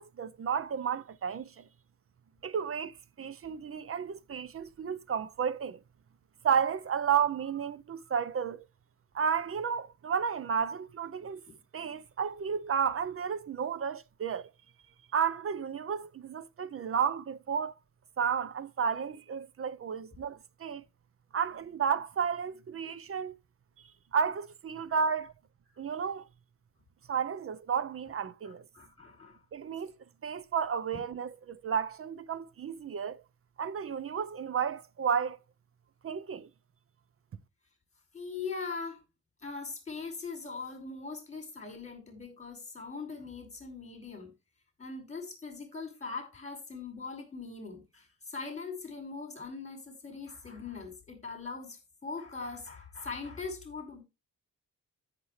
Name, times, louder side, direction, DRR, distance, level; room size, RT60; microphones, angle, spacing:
voice 1, 0.0-1.7 2.4-5.8 6.4-8.6 9.1-11.4 11.7-14.5 15.1-17.7 18.2-20.8 21.3-23.3 24.1-25.3 25.8-26.3 27.1-28.6 29.5-29.9 30.2-33.2 33.6-35.4 36.0-36.5, right 7 dB, 40° right, 0.6 m, -32 dB
voice 2, 28.4-29.4 30.9-31.0 38.1-39.0 39.4-44.3 44.8-54.0, left 4 dB, 20° left, 5.2 m, -41 dB
13.5 x 6.8 x 3.2 m
wide cardioid pair, 160°, 34 cm